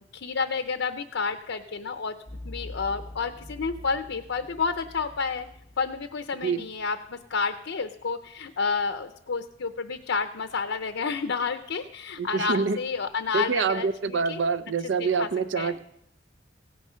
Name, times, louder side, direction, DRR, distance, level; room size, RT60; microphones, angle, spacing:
voice 1, 0.1-2.2 2.4-5.5 5.8-14.4 15.0-15.3 15.6-15.8, left 5 dB, 85° left, 8 dB, 0.7 m, -30 dB
sound 1, 2.3-6.4 6.7-6.8, left 1 dB, 10° right, 2.2 m, -44 dB
voice 2, 12.2-12.8 13.3-15.8, right 5 dB, 80° right, 11 dB, 0.5 m, -26 dB
16.5 x 9.5 x 5.6 m, 0.77 s
head